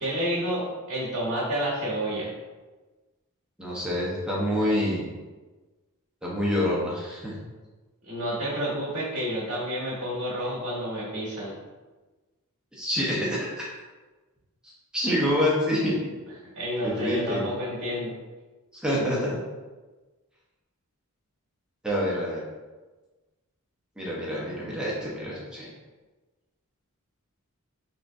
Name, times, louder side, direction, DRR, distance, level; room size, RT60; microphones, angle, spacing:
voice 1, 0.0-2.3 8.0-11.5 16.5-18.1, equal, 55° right, -7 dB, 1.4 m, -29 dB
voice 2, 3.6-5.1 6.2-7.3 12.7-13.7 14.9-16.2 16.8-17.5 18.8-19.4 21.8-22.4 24.0-25.7, equal, 5° right, -6 dB, 0.8 m, -27 dB
3.9 x 3.4 x 2.5 m, 1.2 s
head